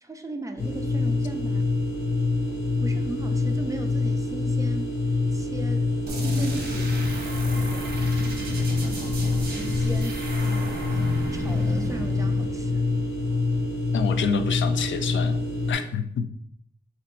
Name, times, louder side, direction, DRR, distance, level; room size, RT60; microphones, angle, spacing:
voice 1, 0.0-1.7 2.8-5.0 5.3-7.0 7.5-7.9 8.7-12.8, right 1 dB, 15° right, 5 dB, 0.3 m, -37 dB
sound 1, 0.6-15.7, left 3 dB, 20° left, 1.8 m, -26 dB
sound 2, 6.1-13.6, right 1 dB, 55° right, 1.1 m, -34 dB
voice 2, 13.9-15.4 15.7-16.3, left 6 dB, 80° left, 8 dB, 0.4 m, -27 dB
3.3 x 3.0 x 4.4 m, 0.67 s
wide cardioid pair, 175°, 19 cm